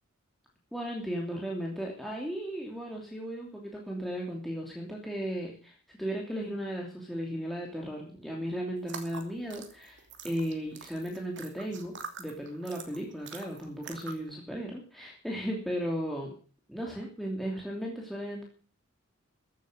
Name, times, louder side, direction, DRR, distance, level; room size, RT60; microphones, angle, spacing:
voice 1, 0.7-16.3 16.7-18.4, equal, ahead, -2 dB, 2.9 m, -36 dB
sound 1, 8.8-14.3, right 5 dB, 55° right, 2.8 m, -46 dB
15.0 x 9.3 x 8.0 m, 0.40 s
head